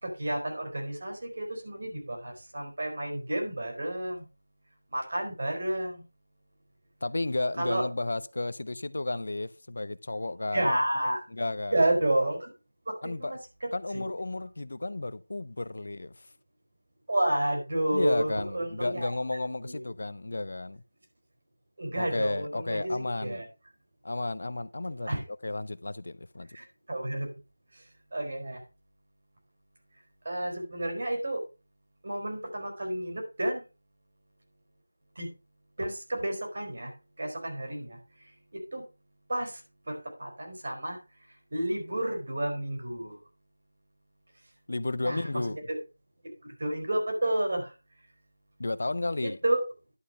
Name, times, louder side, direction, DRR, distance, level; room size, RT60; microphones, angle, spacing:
voice 1, 0.0-4.2 4.9-6.0 7.6-7.8 10.5-11.2 11.7-12.5 12.9-14.1 17.1-19.1 19.7-19.8 21.8-23.4 25.1-25.2 26.5-27.3 27.7-27.8 28.1-28.6 30.2-31.4 32.0-33.6 35.2-35.3 35.8-38.9 39.3-39.6 39.9-41.0 41.5-43.2 45.0-45.3 45.7-45.8 46.6-47.7 49.2-49.6, right 1 dB, 45° right, 4.2 m, -31 dB
voice 2, 7.0-10.8 11.3-11.8 13.0-13.3 13.7-16.3 17.9-20.8 22.0-23.4 24.0-25.1 25.4-26.6 44.7-45.6 48.6-49.4, left 2 dB, 55° left, 0.6 m, -33 dB
11.5 x 5.4 x 5.4 m
figure-of-eight pair, 175°, 0 cm